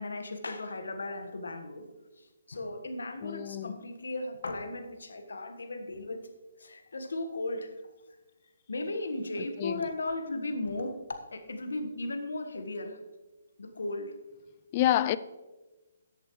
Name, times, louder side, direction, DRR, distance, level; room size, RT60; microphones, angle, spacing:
voice 1, 0.0-1.9 2.2-6.2 6.6-7.7 8.7-11.0 11.3-13.0 13.6-14.1, left 2 dB, 85° left, 7 dB, 1.4 m, -36 dB
voice 2, 3.2-3.8 9.4-9.9 14.7-15.2, left 13 dB, 35° left, 16 dB, 0.4 m, -28 dB
14.0 x 8.3 x 3.2 m, 1.1 s
hypercardioid pair, 150°, 0 cm